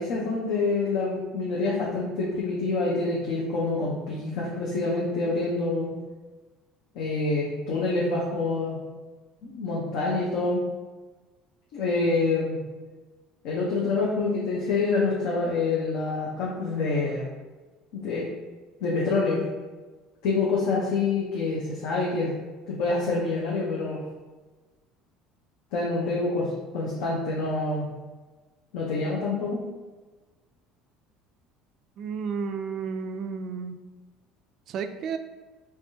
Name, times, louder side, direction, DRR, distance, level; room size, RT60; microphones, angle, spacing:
voice 1, 0.0-5.9 6.9-8.8 9.4-10.6 11.7-12.6 13.4-17.3 17.9-18.3 18.8-19.4 20.2-22.4 22.7-24.0 25.7-27.9 28.7-29.6, left 3 dB, 75° left, -5 dB, 0.8 m, -26 dB
voice 2, 32.0-33.8 34.7-35.2, right 5 dB, 55° right, 8 dB, 0.3 m, -32 dB
3.5 x 3.4 x 2.8 m, 1.3 s
supercardioid pair, 110°, 0 cm